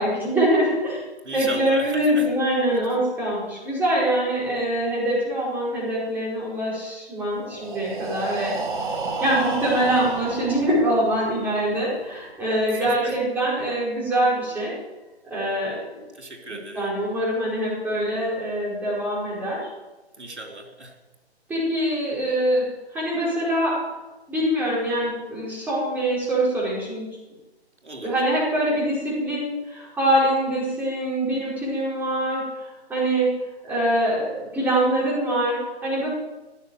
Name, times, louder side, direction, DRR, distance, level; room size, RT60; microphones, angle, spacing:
voice 1, 0.0-1.1 1.3-8.6 9.2-14.7 15.3-16.0 16.5-19.7 21.5-22.6 22.9-23.8 24.3-27.1 28.0-33.3 33.6-36.1, right 1 dB, 5° right, -7 dB, 4.9 m, -24 dB
voice 2, 1.2-2.3 12.7-13.2 16.1-17.0 20.2-21.0 27.8-28.2, right 2 dB, 85° right, 3 dB, 3.5 m, -36 dB
Breathing, 7.4-11.3, right 4 dB, 45° right, 2.5 m, -31 dB
17.5 x 7.4 x 9.4 m, 1.1 s
figure-of-eight pair, 150°, 33 cm